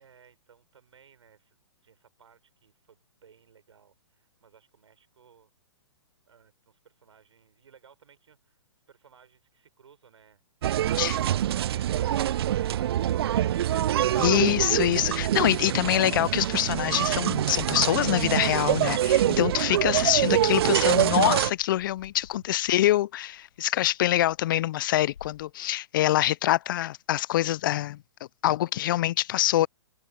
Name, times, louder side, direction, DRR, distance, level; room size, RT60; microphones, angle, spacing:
voice 1, 0.0-5.5 6.3-8.6 8.9-10.4 22.4-22.6, right 7 dB, 75° right, 6.3 m, -59 dB
sound 1, 10.6-21.5, right 12 dB, 60° right, 0.4 m, -25 dB
voice 2, 14.2-28.0 28.4-29.7, left 14 dB, 45° left, 0.4 m, -25 dB
Bird, 17.5-25.5, left 8 dB, 75° left, 1.6 m, -55 dB
hypercardioid pair, 135°, 15 cm